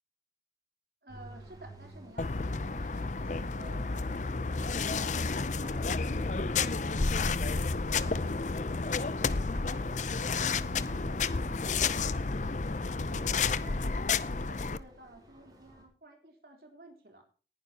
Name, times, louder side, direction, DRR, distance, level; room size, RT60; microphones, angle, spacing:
voice 1, 1.0-7.4 7.9-10.0 10.4-13.9 14.5-17.2, right 1 dB, 60° right, 4 dB, 3.8 m, -53 dB
sound 1, 1.1-15.8, right 1 dB, 20° right, 5.5 m, -54 dB
sound 2, 2.2-14.8, left 4 dB, 45° left, 0.6 m, -31 dB
19.0 x 11.5 x 2.9 m, 0.38 s
head